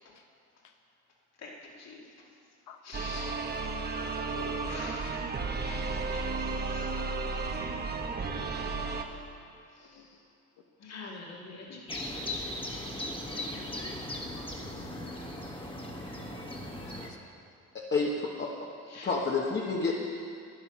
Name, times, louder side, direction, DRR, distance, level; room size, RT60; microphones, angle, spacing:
voice 1, 1.4-2.0 2.8-3.4 3.7-3.9 4.3-5.2 5.6-6.9 9.8-10.0 10.8-12.5 15.0-15.2 18.9-19.1, left 3 dB, 60° left, -2 dB, 2.4 m, -46 dB
sound 1, 2.9-9.0, right 4 dB, 35° right, 1.1 m, -33 dB
voice 2, 3.8-4.4 9.8-10.2 11.7-11.8 13.8-14.4 17.1-17.2, left 7 dB, 80° left, 5 dB, 1.2 m, -53 dB
sound 2, 11.9-17.1, left 1 dB, 15° left, 1.6 m, -38 dB
voice 3, 17.7-18.5 19.0-19.9, left 4 dB, 35° left, -3 dB, 1.4 m, -29 dB
12.0 x 9.9 x 6.0 m, 2.4 s
cardioid pair, 90°, 30 cm